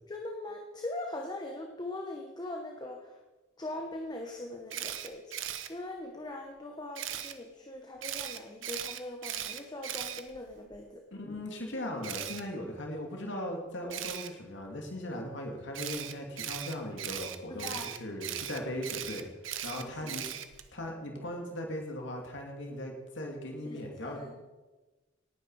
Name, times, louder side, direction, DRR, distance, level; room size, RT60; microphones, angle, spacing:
voice 1, 0.1-3.2 3.6-11.0 17.5-17.9 19.7-20.2 23.6-24.3, left 2 dB, 20° left, 2 dB, 1.2 m, -41 dB
Camera, 4.7-5.7 6.9-7.3 8.0-10.8 12.0-12.4 13.9-14.3 15.7-20.7, right 10 dB, 80° right, 1.0 m, -38 dB
voice 2, 11.1-19.3 19.6-20.2 20.7-24.2, left 1 dB, 65° left, 1 dB, 2.6 m, -38 dB
18.0 x 9.8 x 4.8 m, 1.2 s
head